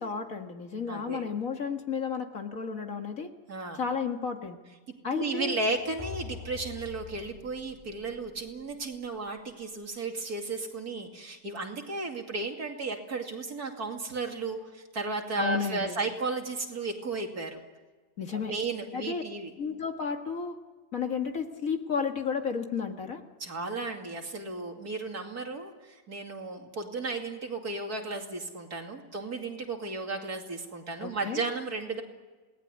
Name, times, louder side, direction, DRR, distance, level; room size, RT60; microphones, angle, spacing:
voice 1, 0.0-3.3 3.7-4.6 5.0-5.6 15.4-16.0 18.2-18.5 18.9-19.2 19.6-20.6 20.9-23.2 31.0-31.4, left 6 dB, 50° left, 4 dB, 2.1 m, -32 dB
voice 2, 0.9-1.3 3.5-3.8 5.1-17.6 18.3-19.5 23.4-32.0, right 3 dB, 60° right, 3 dB, 3.0 m, -34 dB
sound 1, 5.6-9.6, left 5 dB, 15° left, 2.4 m, -46 dB
28.5 x 19.0 x 9.7 m, 1.3 s
omnidirectional pair, 1.9 m